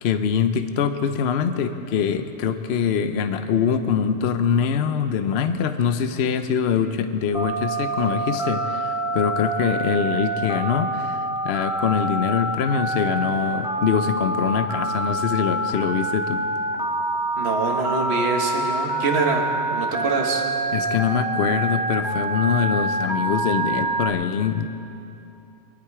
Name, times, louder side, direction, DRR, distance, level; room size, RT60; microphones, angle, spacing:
voice 1, 0.0-16.4 20.7-24.7, left 7 dB, 60° left, 9 dB, 0.8 m, -23 dB
Telephone, 7.3-24.1, right 2 dB, ahead, 1.6 m, -26 dB
voice 2, 17.4-20.4, right 3 dB, 55° right, 1 dB, 1.5 m, -25 dB
23.5 x 11.5 x 4.7 m, 2.8 s
omnidirectional pair, 1.4 m